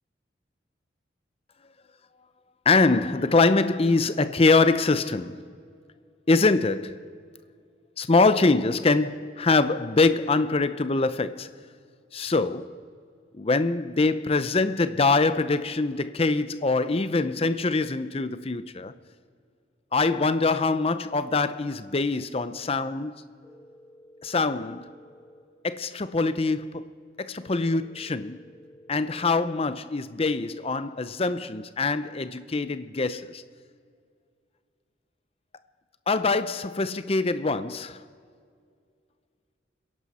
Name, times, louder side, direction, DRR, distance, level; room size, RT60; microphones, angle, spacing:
voice 1, 2.7-5.5 6.3-7.0 8.0-11.5 12.1-12.7 13.3-18.9 19.9-23.2 24.2-24.9 25.6-26.9 27.2-28.4 28.9-33.4 36.1-38.0, left 3 dB, 30° left, 0.6 m, -24 dB
sound 1, 23.4-25.4 27.4-29.4, equal, 10° left, 1.7 m, -52 dB
29.5 x 11.0 x 4.2 m
head